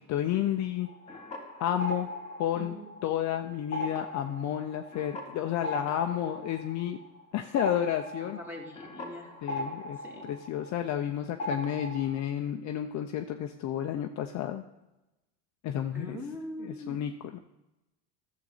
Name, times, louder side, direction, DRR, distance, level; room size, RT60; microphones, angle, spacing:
voice 1, 0.1-0.9 1.6-2.1 2.4-7.0 7.3-8.4 9.4-14.6 15.6-16.2 16.6-17.4, left 11 dB, 40° left, 5 dB, 0.6 m, -31 dB
sound 1, 0.8-3.3 3.6-11.1 11.4-12.2, left 1 dB, 15° left, 2.3 m, -39 dB
voice 2, 2.6-2.9 8.2-9.3 10.0-10.3 15.9-17.0, equal, 5° right, 0 dB, 2.0 m, -42 dB
11.5 x 7.6 x 4.1 m, 0.94 s
supercardioid pair, 115°, 45 cm